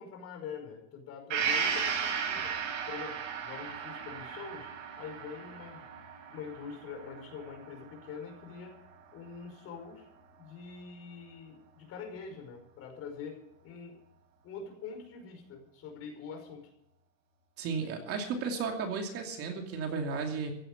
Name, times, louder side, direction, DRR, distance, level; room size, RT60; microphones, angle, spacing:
voice 1, 0.0-2.6 2.9-4.7 5.0-5.8 6.3-8.8 9.1-10.0 10.4-14.0 14.4-16.7 17.8-17.9, left 6 dB, 35° left, 4 dB, 5.3 m, -44 dB
Gong, 1.3-8.9 9.3-9.4, right 6 dB, 80° right, 6.9 m, -36 dB
voice 2, 17.6-20.5, right 5 dB, 35° right, 3 dB, 2.7 m, -34 dB
15.5 x 10.0 x 8.1 m, 0.76 s
supercardioid pair, 155°, 39 cm